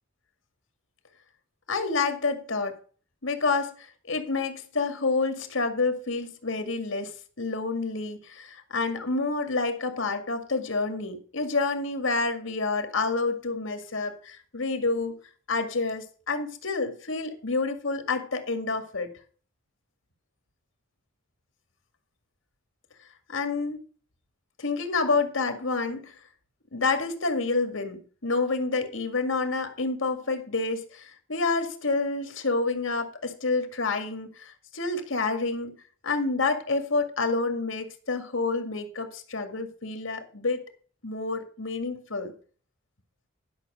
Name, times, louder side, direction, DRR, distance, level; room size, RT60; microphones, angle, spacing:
voice 1, 1.7-2.8 3.2-7.1 7.4-15.2 15.5-19.1 23.3-23.8 24.6-26.1 26.7-35.7 36.0-40.6 41.0-42.3, left 3 dB, 75° left, 6 dB, 2.0 m, -28 dB
11.5 x 6.2 x 6.1 m, 0.42 s
head